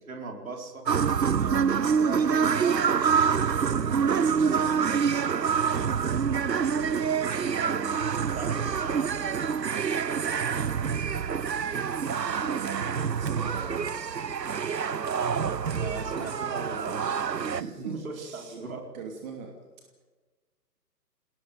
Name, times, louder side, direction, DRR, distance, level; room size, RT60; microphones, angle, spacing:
voice 1, 0.1-0.8 1.4-3.0 4.3-5.1 7.2-9.6 15.8-18.9, right 3 dB, 55° right, 2 dB, 4.7 m, -39 dB
sound 1, 0.9-17.6, right 6 dB, 80° right, 0.9 m, -26 dB
voice 2, 1.1-3.2 3.5-5.4 12.1-14.0 16.4-16.5 17.3-18.6 18.9-19.5, right 7 dB, 25° right, 1 dB, 2.8 m, -41 dB
27.5 x 19.5 x 5.4 m, 1.3 s
figure-of-eight pair, 140°, 49 cm